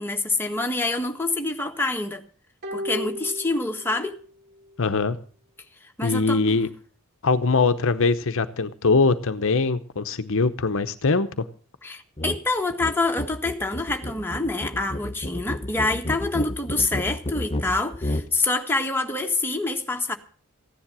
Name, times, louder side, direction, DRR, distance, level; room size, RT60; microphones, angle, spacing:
voice 1, 0.0-2.2 2.7-4.1 6.0-6.6 11.8-20.1, left 2 dB, 10° left, 3 dB, 1.6 m, -26 dB
sound 1, 2.6-4.3 4.6-4.7, left 1 dB, 45° right, 2.5 m, -34 dB
voice 2, 4.8-5.2 6.0-6.7 7.2-11.4, left 4 dB, 60° left, 11 dB, 0.9 m, -22 dB
sound 2, 12.2-12.4 12.7-18.3, left 1 dB, 25° left, 1.0 m, -31 dB
15.5 x 10.5 x 6.2 m, 0.42 s
head